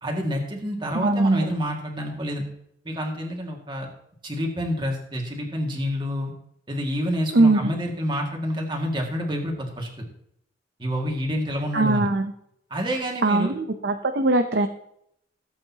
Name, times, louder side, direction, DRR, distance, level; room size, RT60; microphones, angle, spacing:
voice 1, 0.0-2.4 2.8-3.9 4.2-6.3 6.7-10.0 10.8-12.1 12.7-13.5, equal, 25° right, 0 dB, 2.2 m, -28 dB
voice 2, 0.9-1.4 7.3-7.7 11.7-12.3 13.2-14.7, right 2 dB, 60° right, 6 dB, 0.7 m, -21 dB
17.5 x 8.5 x 2.9 m, 0.73 s
head